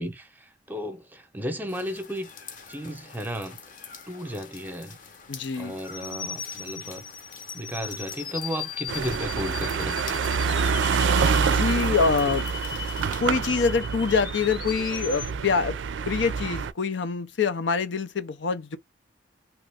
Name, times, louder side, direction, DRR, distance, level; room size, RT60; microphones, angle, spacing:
voice 1, 0.0-2.3 2.7-3.6 4.1-5.0 5.6-7.0 7.5-10.7, equal, 10° right, 0.7 m, -34 dB
sound 1, 1.7-13.2, left 5 dB, 45° left, 0.8 m, -46 dB
voice 2, 5.3-5.8 11.4-12.4 13.2-15.8 16.1-18.8, left 5 dB, 80° left, 0.6 m, -25 dB
sound 2, 7.3-15.3, left 8 dB, 25° left, 0.3 m, -38 dB
sound 3, 8.9-16.7, right 5 dB, 85° right, 0.4 m, -27 dB
3.0 x 2.4 x 3.4 m
head